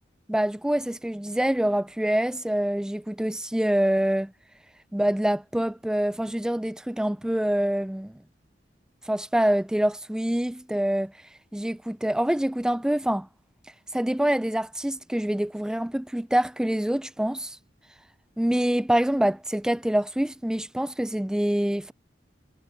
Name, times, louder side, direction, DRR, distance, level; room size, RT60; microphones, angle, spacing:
voice 1, 0.3-4.3 4.9-8.2 9.1-11.1 11.5-13.3 13.9-17.6 18.4-21.9, right 1 dB, 5° right, 0.3 m, -25 dB
head